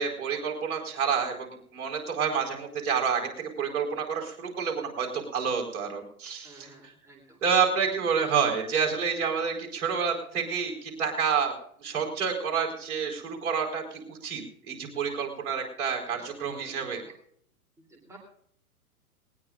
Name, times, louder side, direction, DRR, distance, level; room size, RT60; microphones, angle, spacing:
voice 1, 0.0-6.7 7.4-11.5 11.8-17.0, right 6 dB, 55° right, 1 dB, 4.5 m, -29 dB
voice 2, 6.4-7.4 16.1-17.1 17.8-18.2, right 1 dB, 5° right, 0 dB, 3.1 m, -51 dB
20.0 x 19.0 x 2.5 m, 0.64 s
hypercardioid pair, 120°, 45 cm